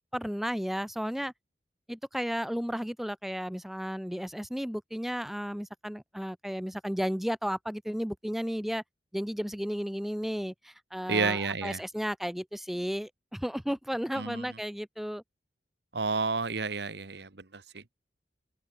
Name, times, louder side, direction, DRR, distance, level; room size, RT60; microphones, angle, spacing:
voice 1, 0.1-1.3 1.9-8.8 9.1-15.2, equal, ahead, 0.4 m, -33 dB
voice 2, 11.1-11.8 14.1-14.6 15.9-17.8, right 4 dB, 70° right, 1.4 m, -31 dB
open air
head